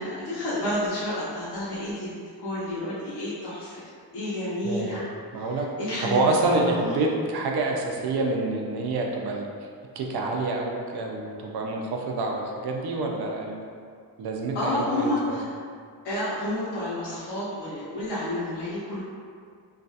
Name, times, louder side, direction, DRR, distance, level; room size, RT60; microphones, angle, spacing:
voice 1, 0.0-3.8 4.1-5.1 5.3-6.9 14.5-15.5 16.0-19.0, left 1 dB, 75° left, -9 dB, 0.7 m, -30 dB
voice 2, 4.6-5.0 5.3-5.7 6.1-9.5 10.0-13.7 14.2-15.4, right 2 dB, 70° right, 1 dB, 0.5 m, -27 dB
2.3 x 2.2 x 2.6 m, 2.2 s
wide cardioid pair, 145°, 40 cm